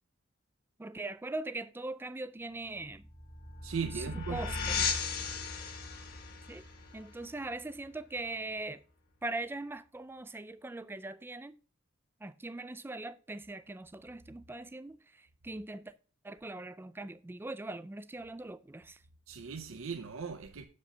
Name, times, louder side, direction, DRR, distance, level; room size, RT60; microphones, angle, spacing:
voice 1, 0.8-3.1 3.9-4.0 4.3-4.8 6.5-6.7 6.9-8.8 9.2-11.6 12.2-15.9 16.2-19.0, right 2 dB, 10° right, 0.3 m, -41 dB
sound 1, 2.8-8.2, left 5 dB, 50° left, 1.3 m, -37 dB
voice 2, 3.6-4.4 4.8-4.9 19.3-20.7, right 6 dB, 70° right, 0.6 m, -38 dB
6.8 x 5.2 x 5.4 m
head